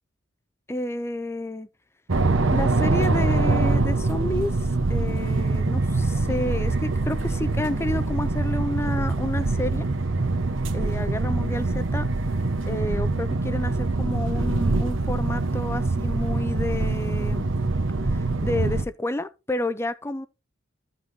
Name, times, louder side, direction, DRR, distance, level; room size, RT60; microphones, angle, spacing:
voice 1, 0.7-1.7 2.5-9.9 10.7-12.1 12.7-17.5 18.1-20.3, left 1 dB, 15° left, 0.5 m, -30 dB
sound 1, 2.1-18.8, right 3 dB, 75° right, 1.0 m, -24 dB
14.5 x 5.8 x 2.7 m
head